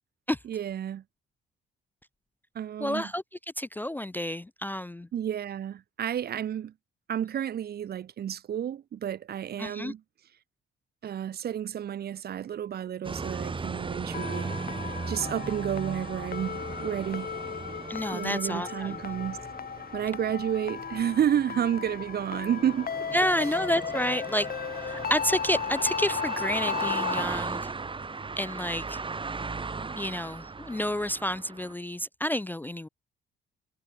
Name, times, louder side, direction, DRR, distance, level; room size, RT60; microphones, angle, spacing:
voice 1, 0.4-1.0 2.5-3.1 5.1-6.7 7.1-10.0 11.0-14.6 15.1-17.3 18.1-19.4 19.9-22.9 23.4-23.5, right 10 dB, 50° right, 0.8 m, -31 dB
voice 2, 2.8-3.2 3.6-5.1 9.6-9.9 17.9-19.0 23.1-24.5 24.9-27.7 28.4-29.0 30.0-32.9, equal, 10° left, 0.4 m, -30 dB
sound 1, 13.0-31.7, right 4 dB, 25° right, 1.8 m, -37 dB
sound 2, 14.1-27.2, left 7 dB, 50° left, 3.7 m, -35 dB
cardioid pair, 90°, 20 cm